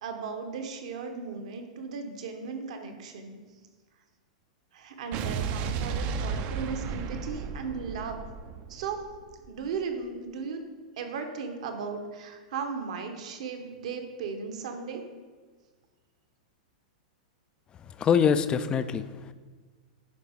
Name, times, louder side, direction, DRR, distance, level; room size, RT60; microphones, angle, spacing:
voice 1, 0.0-3.4 4.7-8.2 8.7-9.0 9.5-10.6 11.0-15.0, right 5 dB, 65° right, 5 dB, 1.1 m, -36 dB
Explosion, 5.1-9.5, right 6 dB, 40° right, 0.5 m, -33 dB
voice 2, 17.8-19.3, left 7 dB, 25° left, 12 dB, 0.3 m, -25 dB
10.5 x 4.3 x 3.6 m, 1.5 s
hypercardioid pair, 100°, 4 cm